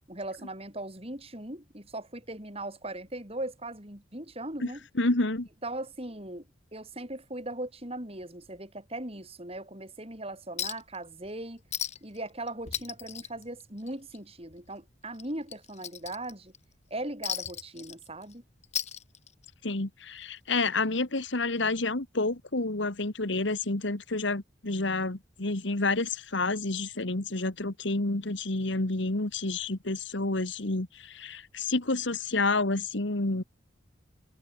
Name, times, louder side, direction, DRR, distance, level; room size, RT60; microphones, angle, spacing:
voice 1, 0.1-4.8 5.6-6.5 6.7-11.6 12.0-16.5 16.9-18.4, right 1 dB, 30° right, 7.0 m, -39 dB
voice 2, 5.0-5.5 19.6-33.4, left 2 dB, 70° left, 1.9 m, -29 dB
Chink clink, 10.6-11.0 11.3-11.4 11.7-12.2 12.5-14.2 14.5-14.7 15.1-16.6 17.2-18.3 18.6-19.6 20.7-20.8, left 9 dB, 35° left, 2.3 m, -36 dB
head